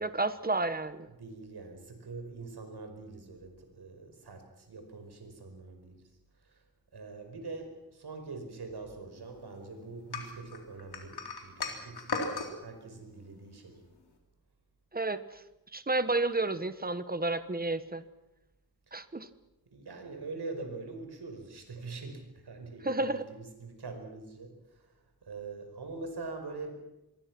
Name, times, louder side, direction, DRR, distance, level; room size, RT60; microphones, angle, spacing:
voice 1, 0.0-1.1 14.9-15.2 15.7-18.0 18.9-19.3 22.8-23.2, right 2 dB, 25° right, 12 dB, 1.2 m, -31 dB
voice 2, 1.1-6.6 6.9-13.8 18.9-19.0 19.7-26.7, right 3 dB, 80° right, 5 dB, 5.0 m, -44 dB
sound 1, 10.1-12.5, left 4 dB, 75° left, 4.0 m, -36 dB
26.5 x 22.5 x 6.1 m, 0.96 s
wide cardioid pair, 130°, 39 cm